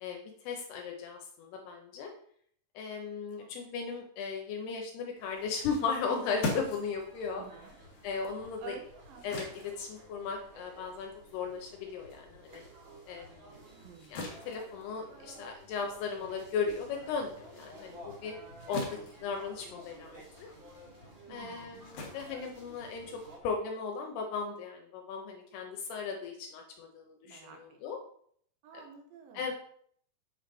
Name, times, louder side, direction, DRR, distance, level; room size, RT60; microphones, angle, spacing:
voice 1, 0.0-2.1 2.8-7.4 8.0-8.8 9.2-12.6 13.1-13.5 14.1-18.3 18.7-20.2 21.3-23.1 23.4-28.0 28.7-28.8 29.3-29.5, left 5 dB, 80° left, 2 dB, 2.7 m, -37 dB
sound 1, 5.2-23.4, right 1 dB, 40° right, 2.0 m, -54 dB
sound 2, 5.9-12.7 13.0-23.2, left 2 dB, 60° left, 2.3 m, -44 dB
voice 2, 7.3-7.8 8.6-9.3 13.8-14.2 21.3-21.8 27.2-27.8 28.6-29.4, right 7 dB, 65° right, 2 dB, 2.7 m, -50 dB
8.1 x 5.0 x 4.0 m, 0.63 s
omnidirectional pair, 5.0 m